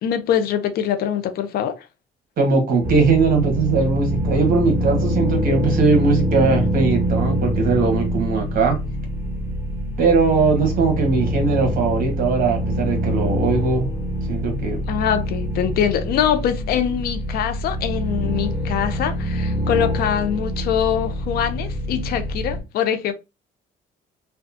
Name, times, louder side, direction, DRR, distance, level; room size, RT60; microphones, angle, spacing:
voice 1, 0.0-1.9 14.9-23.1, left 9 dB, 65° left, 0.5 m, -23 dB
voice 2, 2.4-8.8 10.0-13.9 14.3-14.8, right 4 dB, 60° right, 1.2 m, -20 dB
sound 1, 2.8-22.6, equal, 10° right, 0.7 m, -25 dB
2.8 x 2.2 x 2.6 m
cardioid pair, 110°, 17 cm